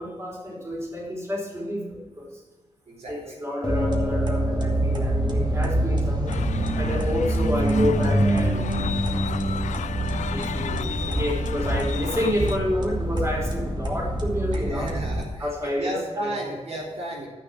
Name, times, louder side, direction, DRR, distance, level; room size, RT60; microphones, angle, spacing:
voice 1, 0.0-2.3 3.1-6.4 6.8-8.7 10.3-14.9 15.4-16.3, left 1 dB, 20° right, -2 dB, 4.7 m, -29 dB
voice 2, 2.9-3.4 14.5-17.3, right 1 dB, 60° right, -4 dB, 3.6 m, -34 dB
sound 1, 3.6-12.8, left 1 dB, 10° left, 1.4 m, -34 dB
sound 2, 3.7-15.2, right 1 dB, 40° right, 2.2 m, -25 dB
sound 3, 6.3-12.6, left 8 dB, 85° left, 0.4 m, -35 dB
14.0 x 6.3 x 7.5 m, 1.4 s
wide cardioid pair, 95°, 12 cm